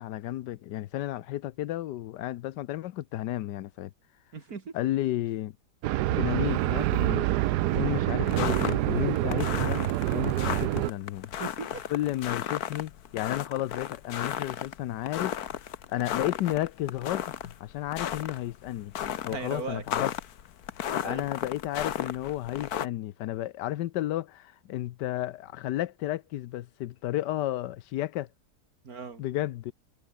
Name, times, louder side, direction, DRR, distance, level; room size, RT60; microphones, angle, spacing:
voice 1, 0.0-3.9 4.7-5.6 6.1-7.3 7.7-9.8 10.1-11.4 11.9-15.4 15.9-17.3 17.6-18.9 19.2-20.1 20.9-28.3 29.2-29.7, left 14 dB, 90° left, 1.3 m, -32 dB
voice 2, 4.3-4.9 11.4-11.9 19.3-19.8 21.0-21.3 28.8-29.2, right 5 dB, 60° right, 2.7 m, -38 dB
sound 1, 5.8-10.9, right 16 dB, 75° right, 1.1 m, -26 dB
sound 2, 8.3-22.9, left 10 dB, 65° left, 1.5 m, -34 dB
omnidirectional pair, 1.8 m